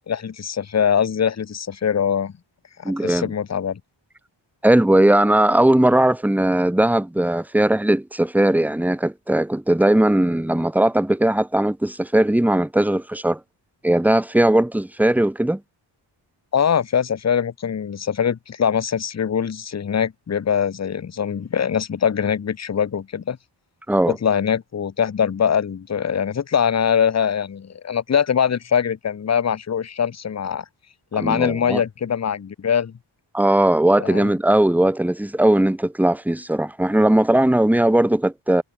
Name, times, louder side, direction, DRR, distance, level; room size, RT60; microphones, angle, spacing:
voice 1, 0.1-2.3 2.8-3.8 16.5-23.4 24.1-30.6 31.1-32.9 34.0-34.3, left 7 dB, 35° left, 0.7 m, -22 dB
voice 2, 2.8-3.3 4.6-13.4 13.8-15.6 23.9-24.2 31.2-31.8 33.3-38.6, right 1 dB, 5° right, 0.9 m, -18 dB
wide cardioid pair, 145°, 48 cm